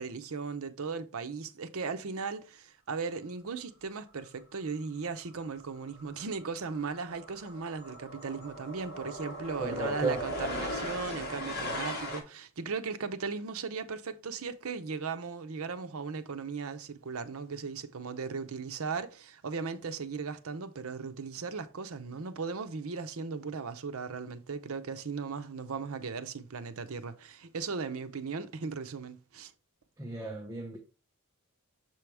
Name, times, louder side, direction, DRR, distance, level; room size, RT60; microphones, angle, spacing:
voice 1, 0.0-29.5, right 5 dB, 75° right, 0.7 m, -37 dB
sound 1, 5.4-5.6 5.9-12.2, equal, 45° left, 1.7 m, -38 dB
voice 2, 9.6-10.2 30.0-30.8, right 2 dB, 15° right, 0.8 m, -34 dB
6.9 x 4.6 x 3.4 m
head